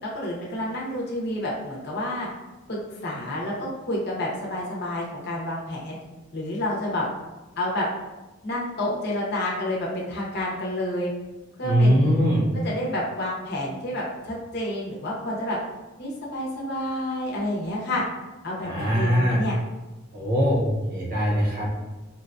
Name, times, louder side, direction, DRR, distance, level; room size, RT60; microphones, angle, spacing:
voice 1, 0.0-2.3 2.7-6.0 6.3-7.0 7.6-7.9 8.4-11.1 11.6-12.2 12.6-15.6 16.0-18.0 18.4-19.6, left 1 dB, 50° left, -4 dB, 0.7 m, -29 dB
voice 2, 11.6-12.4 18.6-19.4 20.1-21.8, equal, 45° right, -4 dB, 0.8 m, -22 dB
4.4 x 2.2 x 2.5 m, 1.1 s
head